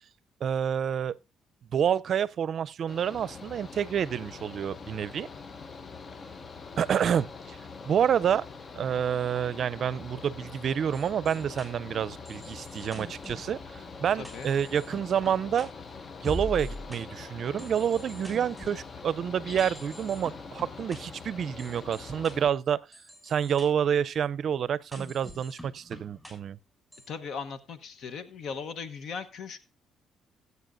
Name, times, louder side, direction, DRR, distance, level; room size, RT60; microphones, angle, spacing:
voice 1, 0.4-1.1 1.7-5.3 6.8-7.6 7.8-8.4 8.7-15.7 16.2-22.8 23.2-26.6, right 8 dB, 60° right, 0.5 m, -28 dB
Mechanical fan, 2.9-22.5, left 4 dB, 40° left, 0.8 m, -44 dB
sound 1, 10.9-17.0 17.6-18.8 19.6-21.0 21.6-22.3 22.9-23.7 24.9-26.3 26.9-27.1, equal, 10° left, 6.9 m, -44 dB
voice 2, 14.1-14.5 27.1-29.6, left 5 dB, 65° left, 1.0 m, -38 dB
18.5 x 8.2 x 2.6 m
cardioid pair, 80°, 0 cm